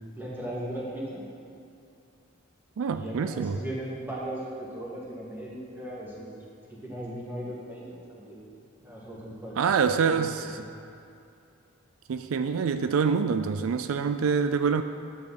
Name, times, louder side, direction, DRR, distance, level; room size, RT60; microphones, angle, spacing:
voice 1, 0.1-1.2 2.9-6.3 6.7-8.4 8.8-10.6, right 1 dB, 10° right, -6 dB, 2.2 m, -37 dB
voice 2, 2.8-3.6 9.6-10.6 12.1-14.8, right 6 dB, 75° right, 9 dB, 0.4 m, -26 dB
11.5 x 8.4 x 4.3 m, 2.5 s
head